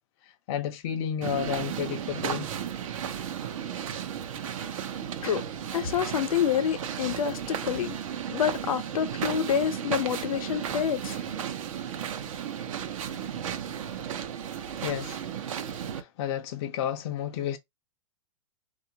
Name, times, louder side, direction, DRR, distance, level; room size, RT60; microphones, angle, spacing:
voice 1, 0.5-2.5 14.8-15.2 15.9-17.6, left 9 dB, 50° left, 0.5 m, -31 dB
sound 1, 1.2-16.0, right 9 dB, 70° right, 0.7 m, -34 dB
voice 2, 5.7-8.0 8.3-11.5, left 9 dB, 80° left, 0.8 m, -28 dB
3.6 x 2.5 x 2.8 m
hypercardioid pair, 140°, 18 cm